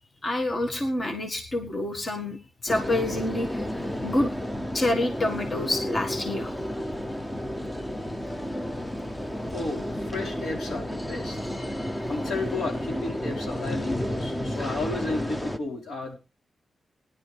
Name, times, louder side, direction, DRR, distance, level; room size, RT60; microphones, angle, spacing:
voice 1, 0.2-4.4 4.7-6.5, left 1 dB, 30° left, 4 dB, 1.7 m, -28 dB
sound 1, 2.7-15.6, equal, 10° left, 0.8 m, -32 dB
voice 2, 9.5-11.4 12.1-16.2, left 3 dB, 85° left, -1 dB, 4.8 m, -33 dB
19.0 x 11.0 x 3.4 m, 0.30 s
wide cardioid pair, 165°, 0 cm